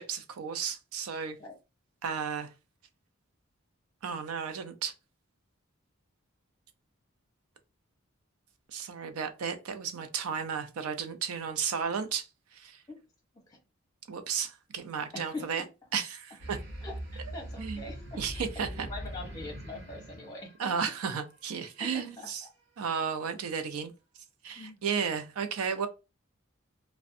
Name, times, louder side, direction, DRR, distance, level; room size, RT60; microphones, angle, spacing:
voice 1, 0.0-1.4 2.0-2.5 4.0-4.9 8.7-12.8 14.1-15.6 15.9-16.6 17.6-17.8 18.2-18.9 20.6-22.4 22.8-23.9 24.4-25.9, right 6 dB, 90° right, 0.4 m, -33 dB
voice 2, 15.1-15.7 16.8-20.9 21.8-22.5 24.6-24.8, left 2 dB, 15° left, 0.7 m, -43 dB
sound 1, 16.4-21.3, equal, 55° right, 0.7 m, -42 dB
2.5 x 2.1 x 2.5 m
head